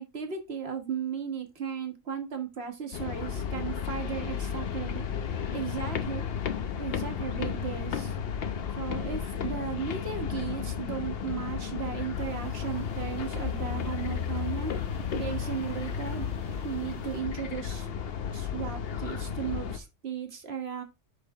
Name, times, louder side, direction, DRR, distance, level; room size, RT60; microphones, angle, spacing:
voice 1, 0.0-6.3 6.8-8.1 8.8-14.8 15.1-16.3 16.6-17.9 18.3-20.8, right 7 dB, 55° right, 6 dB, 1.6 m, -36 dB
sound 1, 2.9-19.8, left 7 dB, 55° left, 0.9 m, -33 dB
sound 2, 12.1-17.2, left 2 dB, 75° left, 1.8 m, -44 dB
6.5 x 5.5 x 3.5 m, 0.26 s
omnidirectional pair, 1.3 m